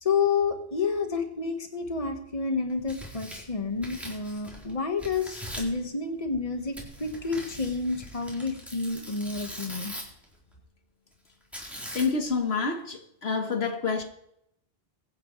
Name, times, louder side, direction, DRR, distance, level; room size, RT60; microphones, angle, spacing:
voice 1, 0.0-9.9, left 4 dB, 35° left, 1.6 m, -29 dB
Tearing, 2.7-4.7 5.0-5.8 6.7-10.2 11.5-12.3, equal, ahead, 3.9 m, -41 dB
voice 2, 11.9-14.0, left 4 dB, 85° left, 1.6 m, -28 dB
23.0 x 9.8 x 3.2 m
omnidirectional pair, 1.0 m